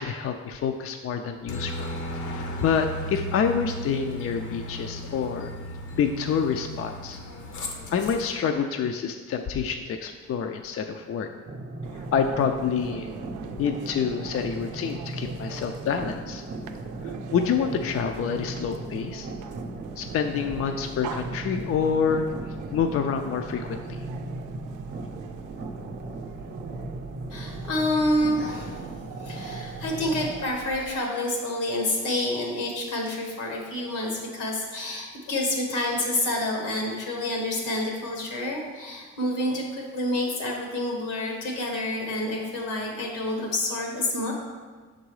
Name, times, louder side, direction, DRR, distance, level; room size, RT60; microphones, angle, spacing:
voice 1, 0.0-1.9 2.2-5.5 5.9-7.2 7.9-11.3 12.1-13.1 13.6-16.4 17.0-19.3 20.0-22.3 22.7-24.0, left 6 dB, 50° left, 5 dB, 0.4 m, -27 dB
Aircraft, 1.5-8.3, equal, 75° left, 0.9 m, -35 dB
sound 1, 11.5-30.3, right 2 dB, 35° right, 0.6 m, -37 dB
sound 2, 11.8-31.0, right 7 dB, 80° right, 0.5 m, -43 dB
voice 2, 27.3-28.9 29.2-44.3, left 1 dB, 90° left, 0 dB, 1.5 m, -28 dB
6.2 x 3.9 x 4.7 m, 1.4 s
cardioid pair, 90°, 30 cm